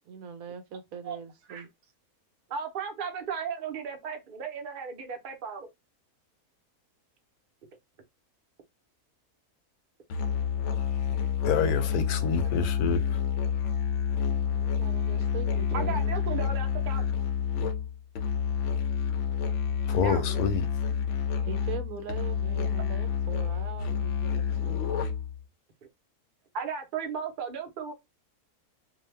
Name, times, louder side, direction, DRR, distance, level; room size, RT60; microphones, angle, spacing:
voice 1, 0.1-1.7 14.5-16.2 21.4-24.8, right 7 dB, 70° right, 1.0 m, -41 dB
voice 2, 2.5-5.7 15.7-17.1 20.0-20.4 26.5-27.9, right 6 dB, 50° right, 0.7 m, -35 dB
Musical instrument, 10.1-25.4, left 7 dB, 65° left, 0.8 m, -29 dB
voice 3, 11.4-13.2 19.9-20.7, left 5 dB, 80° left, 1.1 m, -28 dB
2.6 x 2.2 x 3.1 m
omnidirectional pair, 1.6 m